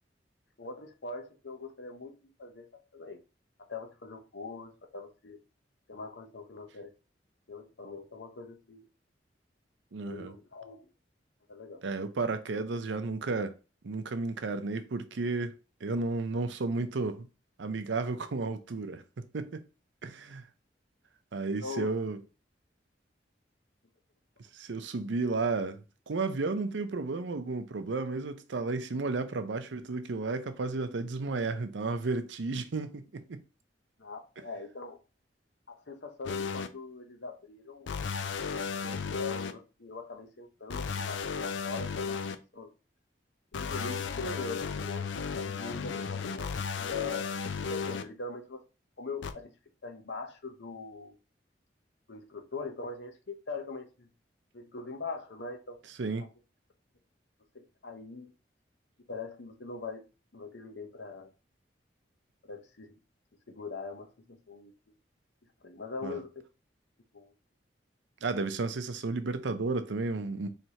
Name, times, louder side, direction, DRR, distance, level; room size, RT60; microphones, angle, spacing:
voice 1, 0.6-2.7 2.9-3.2 3.7-5.4 5.9-6.9 7.5-8.8 10.0-10.9 11.5-11.8 21.6-22.0 34.0-35.0 35.7-37.9 38.8-42.2 42.5-42.7 43.5-45.0 45.3-47.3 47.7-48.6 49.0-49.5 49.8-51.2 52.1-54.1 54.5-55.8 57.5-58.3 59.1-60.0 60.3-61.3 62.4-63.0 63.5-65.0 65.6-66.4 67.1-67.3 68.6-68.7, left 4 dB, 70° left, 0.9 m, -42 dB
voice 2, 9.9-10.3 11.8-13.5 13.8-15.5 15.8-17.3 17.6-19.6 20.0-20.5 21.3-22.2 24.5-33.4 56.0-56.3 66.0-66.2 68.2-70.5, right 3 dB, 85° right, 0.6 m, -33 dB
sound 1, 36.3-36.7 37.9-39.5 40.7-42.4 43.5-48.0 49.2-49.3, left 5 dB, 90° left, 0.4 m, -34 dB
4.5 x 3.3 x 2.8 m
head